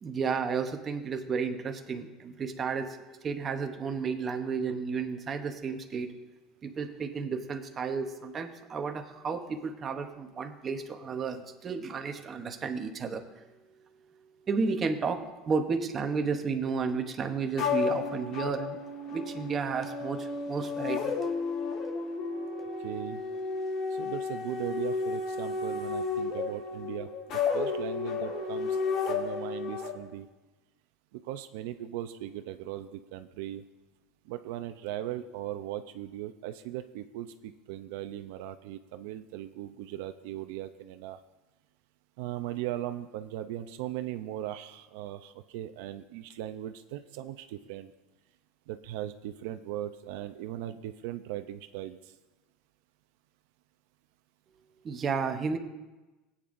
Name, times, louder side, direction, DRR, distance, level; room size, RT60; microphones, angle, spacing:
voice 1, 0.0-3.0 3.2-6.1 6.6-13.3 14.5-18.8 19.1-21.1 54.8-55.6, right 5 dB, 20° right, 6 dB, 0.8 m, -32 dB
sound 1, 17.6-29.9, left 4 dB, 40° left, 1.5 m, -32 dB
voice 2, 22.8-23.2 23.9-30.3 31.1-33.6 34.3-41.2 42.2-47.9 48.7-52.1, right 13 dB, 70° right, 9 dB, 0.5 m, -38 dB
20.0 x 8.7 x 2.6 m, 1.1 s
cardioid pair, 175°, 0 cm